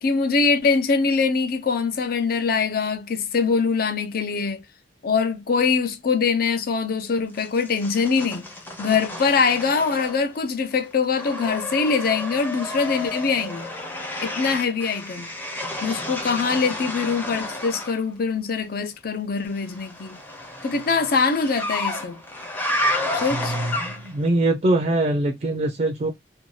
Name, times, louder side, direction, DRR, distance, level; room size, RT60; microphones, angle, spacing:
voice 1, 0.0-4.6 5.0-8.5 8.8-13.7 14.2-15.3 15.8-20.2 20.6-22.2 23.1-23.6, left 5 dB, 60° left, 0.5 m, -23 dB
sound 1, 7.4-10.4 10.7-18.0 19.5-24.3, left 1 dB, 10° left, 0.6 m, -31 dB
voice 2, 23.3-26.1, right 2 dB, 40° right, 0.4 m, -23 dB
2.6 x 2.2 x 3.1 m
head